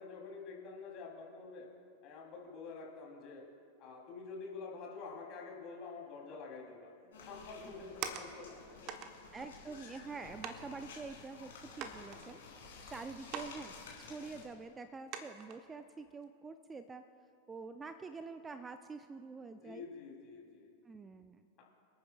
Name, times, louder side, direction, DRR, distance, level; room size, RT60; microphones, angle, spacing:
voice 1, 0.0-1.7 2.0-3.4 3.8-6.9 7.3-8.9 19.5-20.7, left 4 dB, 40° left, -2 dB, 2.9 m, -48 dB
sound 1, 7.1-14.5, left 4 dB, 60° left, 3.0 m, -53 dB
sound 2, 7.5-8.5 8.9-9.1 9.9-10.0 10.4-10.7 11.2-11.3 11.8-12.8 13.3-13.6 13.9-14.0 14.5-14.6 15.1-15.6 16.1-16.2, right 7 dB, 40° right, 0.9 m, -43 dB
voice 2, 9.3-11.5 11.8-12.4 12.9-17.0 17.5-19.9 20.8-21.4, right 4 dB, 15° right, 10 dB, 0.4 m, -46 dB
27.0 x 9.1 x 2.3 m, 2.5 s
figure-of-eight pair, 90°, 0 cm